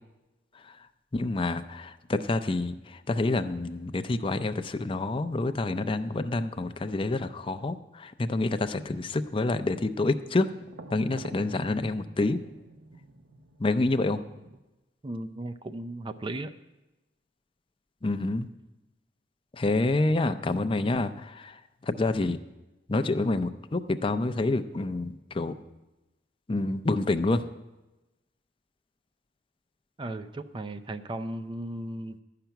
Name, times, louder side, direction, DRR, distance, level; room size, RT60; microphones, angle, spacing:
voice 1, 1.1-10.5 10.9-12.4 13.6-14.2 18.0-18.5 19.5-22.4 22.9-25.6 26.5-27.4, left 2 dB, 30° left, 10 dB, 0.5 m, -28 dB
sound 1, 9.9-14.6, right 2 dB, 90° right, 0.8 m, -49 dB
voice 2, 15.0-16.5 30.0-32.2, right 1 dB, 30° right, 9 dB, 0.4 m, -36 dB
11.5 x 5.9 x 9.1 m, 1.0 s
head